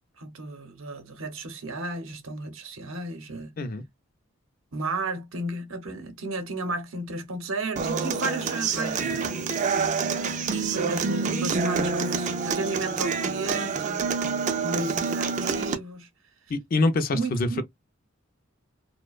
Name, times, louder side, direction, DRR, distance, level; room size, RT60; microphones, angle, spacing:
voice 1, 0.2-3.5 4.7-9.6 10.5-16.1 17.1-17.6, right 2 dB, 75° right, 0.7 m, -33 dB
Human voice / Acoustic guitar, 7.8-15.7, right 5 dB, 35° right, 0.3 m, -27 dB
Squeak, 8.3-13.7, left 3 dB, 90° left, 0.6 m, -47 dB
voice 2, 16.5-17.6, left 2 dB, 45° left, 0.4 m, -25 dB
2.6 x 2.1 x 2.3 m
head